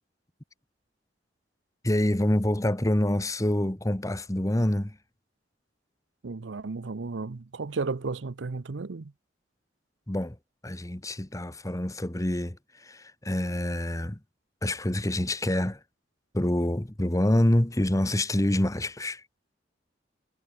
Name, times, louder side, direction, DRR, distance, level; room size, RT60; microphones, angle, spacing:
voice 1, 1.8-5.0 10.1-10.4 10.6-14.2 14.6-15.8 16.3-19.2, left 1 dB, 20° left, 1.2 m, -26 dB
voice 2, 6.2-9.1, right 4 dB, 90° right, 0.7 m, -33 dB
head